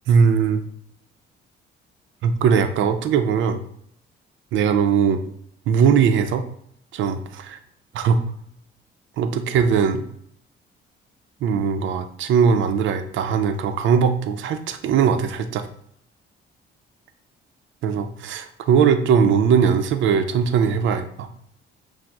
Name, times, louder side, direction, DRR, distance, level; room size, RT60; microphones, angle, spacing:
voice 1, 0.1-0.6 2.2-3.6 4.5-5.2 5.7-6.4 6.9-7.6 7.9-8.2 9.2-10.0 11.4-15.7 17.8-21.3, right 6 dB, 75° right, 8 dB, 0.5 m, -20 dB
5.9 x 2.0 x 3.5 m, 0.69 s
cardioid pair, 90°, 20 cm